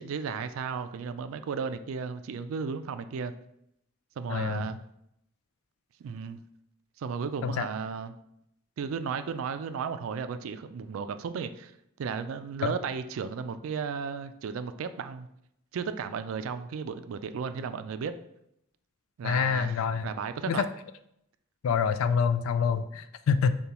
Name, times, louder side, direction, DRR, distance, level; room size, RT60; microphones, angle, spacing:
voice 1, 0.0-3.3 4.2-4.8 6.0-6.4 7.0-8.1 8.8-11.7 12.0-15.3 15.7-18.1 19.2-20.6, right 6 dB, 80° right, 11 dB, 0.3 m, -34 dB
voice 2, 4.3-4.7 7.4-7.7 12.6-12.7 19.2-20.1 20.5-20.7 21.6-23.6, left 6 dB, 85° left, 12 dB, 0.3 m, -26 dB
6.7 x 2.3 x 2.9 m, 0.77 s
head